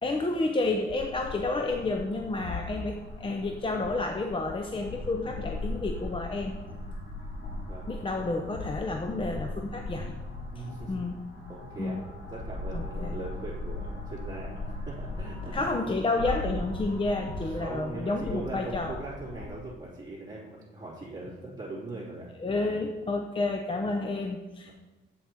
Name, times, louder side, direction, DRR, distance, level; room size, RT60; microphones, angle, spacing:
voice 1, 0.0-6.5 7.9-10.1 10.6-11.2 11.8-12.0 12.7-13.2 15.5-19.0 22.4-24.7, left 2 dB, 25° left, 4 dB, 0.7 m, -30 dB
sound 1, 0.9-19.5, left 2 dB, 70° left, 2.8 m, -38 dB
voice 2, 10.5-12.0 12.3-15.6 17.4-22.8, right 2 dB, 15° right, -10 dB, 3.1 m, -40 dB
8.0 x 7.8 x 4.5 m, 1.1 s
cardioid pair, 90°, 20 cm